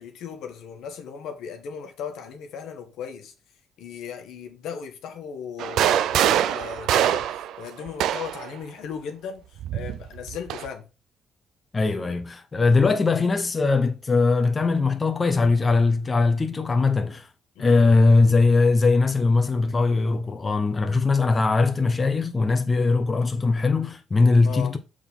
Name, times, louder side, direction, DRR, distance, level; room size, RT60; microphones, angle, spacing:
voice 1, 0.0-3.3 3.8-10.9 12.7-13.0 17.5-18.0 24.4-24.7, left 7 dB, 85° left, 1.4 m, -37 dB
sound 1, 5.6-8.5 9.6-10.7, right 11 dB, 85° right, 0.4 m, -24 dB
voice 2, 11.7-17.3 17.6-24.8, left 3 dB, 30° left, 0.9 m, -20 dB
6.7 x 3.7 x 5.5 m
cardioid pair, 90°, 0 cm